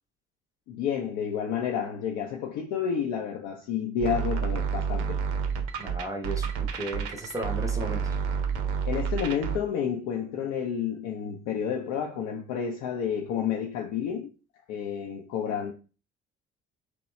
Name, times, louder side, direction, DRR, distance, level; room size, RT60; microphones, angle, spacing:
voice 1, 0.7-5.2 8.9-14.3 14.7-15.7, left 7 dB, 55° left, 0.5 m, -30 dB
sound 1, 4.0-9.6, right 6 dB, 60° right, 0.6 m, -29 dB
voice 2, 5.8-8.2, right 1 dB, 10° right, 0.6 m, -35 dB
2.9 x 2.2 x 3.1 m
figure-of-eight pair, 50°, 34 cm